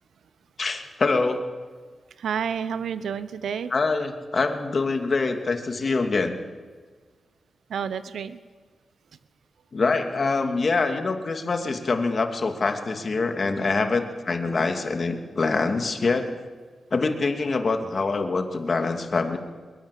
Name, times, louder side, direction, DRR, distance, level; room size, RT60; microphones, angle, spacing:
voice 1, 0.6-1.4 3.7-6.4 9.7-16.3 16.9-19.4, left 3 dB, 45° left, 5 dB, 2.8 m, -25 dB
voice 2, 2.2-3.7 7.7-8.4, right 7 dB, 90° right, 13 dB, 1.0 m, -29 dB
23.5 x 22.0 x 8.6 m, 1.5 s
wide cardioid pair, 100°, 0 cm